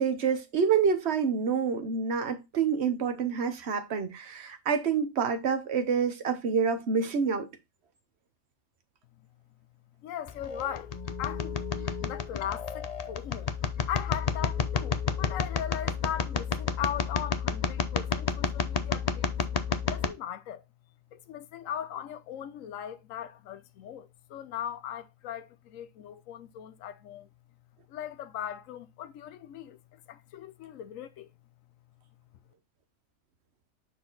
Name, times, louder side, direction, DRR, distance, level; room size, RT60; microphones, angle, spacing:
voice 1, 0.0-7.5, right 6 dB, 55° right, 1.3 m, -27 dB
voice 2, 10.0-11.6 12.0-13.5 13.9-19.3 19.9-20.6 21.1-27.3 27.9-31.3, left 10 dB, 80° left, 1.0 m, -39 dB
sound 1, 10.3-20.1, left 6 dB, 40° left, 0.6 m, -31 dB
6.1 x 4.8 x 3.9 m
omnidirectional pair, 1.4 m